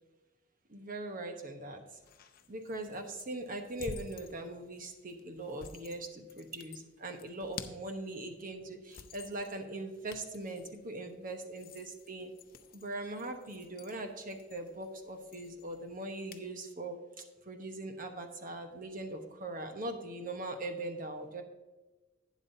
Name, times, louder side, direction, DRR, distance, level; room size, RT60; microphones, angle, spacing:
voice 1, 0.7-1.8 2.5-12.3 12.7-17.0 17.5-21.4, right 2 dB, 45° right, 5 dB, 1.1 m, -41 dB
sound 1, 1.9-16.5, left 5 dB, 50° left, 0.6 m, -52 dB
11.5 x 9.4 x 2.7 m, 1.2 s
head